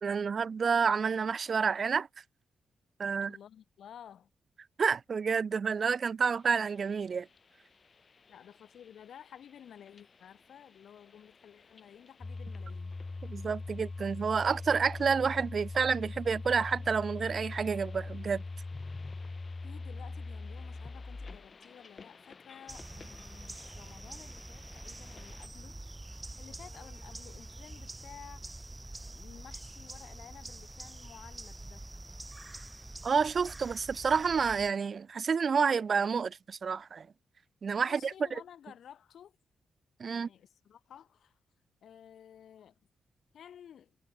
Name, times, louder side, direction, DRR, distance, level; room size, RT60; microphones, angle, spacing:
voice 1, 0.0-2.1 3.0-3.3 4.8-7.3 13.2-18.4 33.0-37.1 37.6-38.1 40.0-40.3, right 6 dB, 50° right, 1.1 m, -29 dB
voice 2, 3.2-4.3 8.3-13.0 19.6-25.9 26.4-28.4 29.0-32.0 37.8-39.4 40.1-41.4 41.8-42.8 43.3-44.0, left 9 dB, 75° left, 3.6 m, -53 dB
sound 1, 6.2-25.5, left 5 dB, 45° left, 3.7 m, -59 dB
sound 2, 12.2-21.5, left 3 dB, 30° left, 0.7 m, -41 dB
sound 3, 22.7-34.7, right 2 dB, 20° right, 2.3 m, -46 dB
cardioid pair, 75°, 0 cm